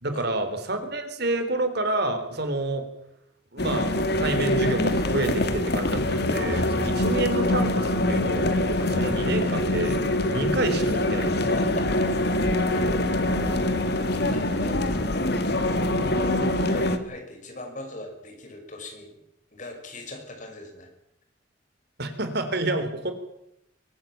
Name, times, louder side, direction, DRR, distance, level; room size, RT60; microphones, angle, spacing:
voice 1, 0.0-2.8 3.5-11.6 22.0-23.1, right 2 dB, 60° right, 8 dB, 3.9 m, -29 dB
sound 1, 3.6-17.0, left 1 dB, 60° left, 2.1 m, -24 dB
voice 2, 11.6-12.1 12.7-14.0 14.3-15.4 15.9-19.1 19.5-20.9, left 2 dB, 40° left, 4 dB, 6.0 m, -40 dB
24.0 x 16.5 x 8.9 m, 0.80 s
head